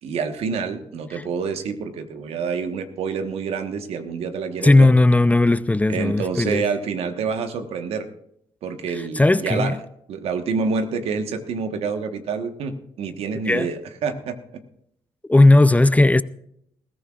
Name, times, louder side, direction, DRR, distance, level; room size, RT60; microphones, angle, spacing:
voice 1, 0.0-4.9 5.9-8.1 8.6-9.8 10.1-14.4, right 5 dB, 80° right, 1.4 m, -27 dB
voice 2, 4.6-6.6 8.9-9.8 13.5-13.7 15.3-16.2, left 2 dB, 15° left, 0.5 m, -16 dB
20.5 x 14.0 x 2.5 m
supercardioid pair, 55°, 10 cm